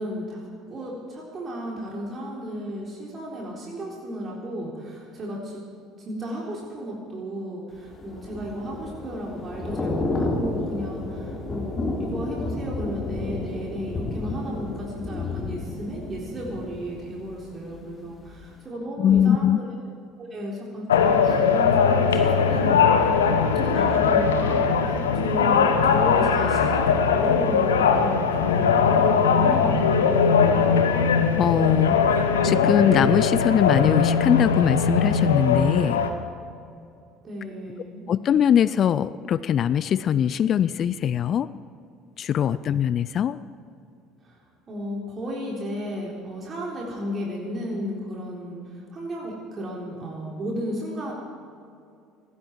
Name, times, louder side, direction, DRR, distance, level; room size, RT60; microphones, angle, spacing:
voice 1, 0.0-5.6 6.0-19.7 20.2-30.5 37.2-38.1 44.2-51.1, equal, 35° right, -3 dB, 3.8 m, -34 dB
Thunder / Rain, 7.9-17.8 18.1-18.4, left 2 dB, 30° left, 3.2 m, -31 dB
voice 2, 19.0-19.6 31.4-36.0 38.1-41.5 42.2-43.4, left 9 dB, 45° left, 17 dB, 0.5 m, -22 dB
sound 1, 20.9-36.1, left 6 dB, 80° left, 1.1 m, -20 dB
19.5 x 15.5 x 4.7 m, 2.5 s
figure-of-eight pair, 60°, 0 cm